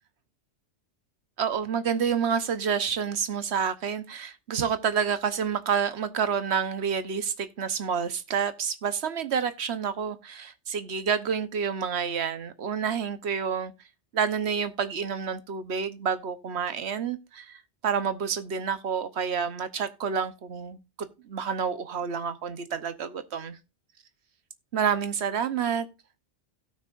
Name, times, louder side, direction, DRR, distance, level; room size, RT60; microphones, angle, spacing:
voice 1, 1.4-13.7 14.1-20.8 21.3-23.6 24.7-25.9, right 7 dB, 70° right, 1.2 m, -29 dB
17.0 x 6.1 x 2.5 m
omnidirectional pair, 1.2 m